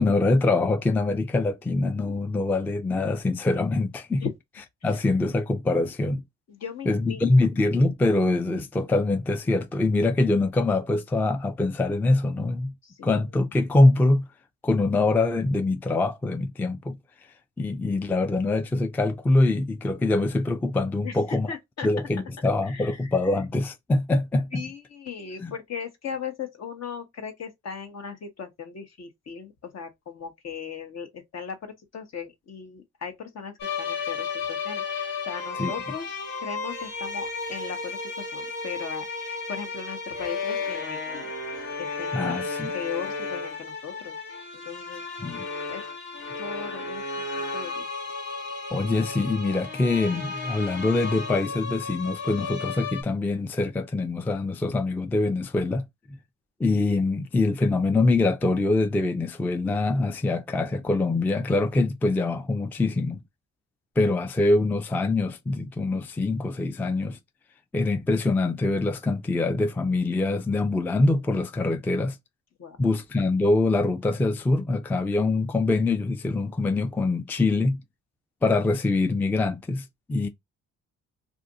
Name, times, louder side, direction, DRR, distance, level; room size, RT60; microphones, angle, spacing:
voice 1, 0.0-4.2 4.8-6.2 6.9-12.7 13.0-14.3 14.6-17.0 17.6-21.5 21.8-24.6 25.4-25.5 35.6-35.7 42.1-42.7 45.2-45.5 48.7-55.8 56.6-63.2 64.0-67.2 67.7-72.2 72.8-77.8 78.4-80.3, left 2 dB, 5° left, 0.3 m, -24 dB
voice 2, 6.5-7.5 12.8-13.2 21.0-21.9 22.6-23.2 24.5-41.3 41.8-42.4 42.7-44.1 44.5-45.0 45.7-45.8 46.4-47.9 72.6-72.8, left 6 dB, 60° left, 1.1 m, -38 dB
sound 1, 33.6-53.0, left 4 dB, 85° left, 1.6 m, -33 dB
2.5 x 2.5 x 3.8 m
cardioid pair, 90°, 30 cm